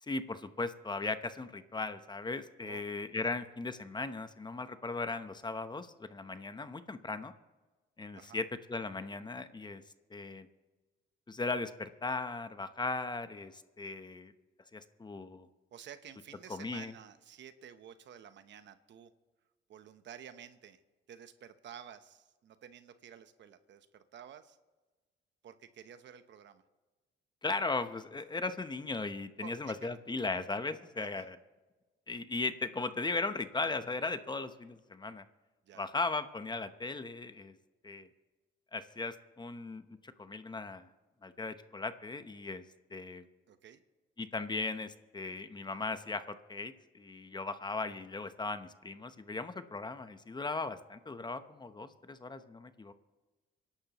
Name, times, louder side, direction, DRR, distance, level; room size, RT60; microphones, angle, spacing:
voice 1, 0.0-7.3 8.0-9.8 10.1-10.5 11.3-14.3 14.7-15.5 16.5-16.9 27.4-31.4 32.1-35.2 35.8-37.5 37.8-38.1 38.7-40.9 41.2-42.6 42.9-43.2 44.2-52.9, left 3 dB, 20° left, 10 dB, 0.9 m, -37 dB
voice 2, 15.7-19.1 19.7-20.8 21.1-24.6 25.4-26.6 29.4-30.0 31.0-31.3 35.7-35.8 43.5-43.8, right 9 dB, 65° right, 11 dB, 1.0 m, -52 dB
25.0 x 11.5 x 3.0 m, 1.2 s
cardioid pair, 90°, 20 cm